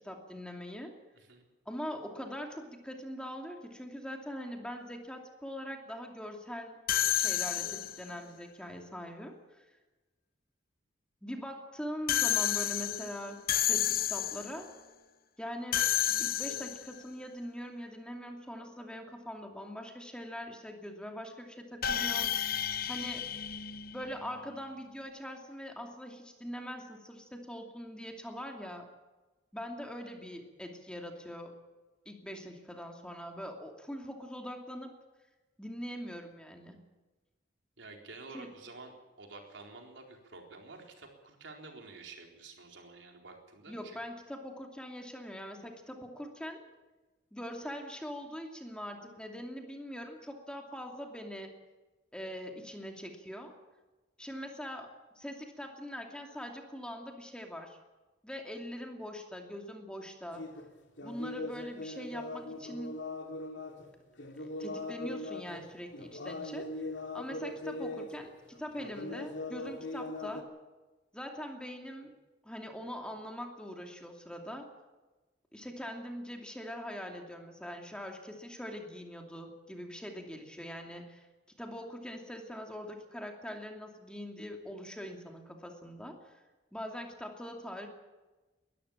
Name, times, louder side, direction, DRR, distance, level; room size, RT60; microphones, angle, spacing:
voice 1, 0.0-0.9 1.7-6.8 7.1-9.6 11.2-14.7 15.4-15.9 16.2-22.5 22.9-23.3 23.9-28.9 29.5-31.5 32.1-34.9 35.6-36.8 38.3-38.5 43.7-46.6 47.3-51.6 52.1-53.5 54.2-57.8 58.2-60.5 61.0-62.9 64.4-66.9 67.1-70.5 71.1-72.1 72.4-74.7 75.5-81.3 81.6-86.2 86.7-87.9, equal, 5° left, 3 dB, 2.6 m, -42 dB
sound 1, 6.9-8.1 12.1-14.6 15.7-17.0 21.8-24.4, left 11 dB, 55° left, 0.9 m, -31 dB
voice 2, 37.8-44.0, right 3 dB, 90° right, 2 dB, 4.1 m, -50 dB
sound 2, 60.3-60.7 61.0-63.9 64.2-68.3 68.5-70.4, left 2 dB, 70° left, 2.7 m, -40 dB
21.5 x 13.5 x 8.8 m, 1.2 s
head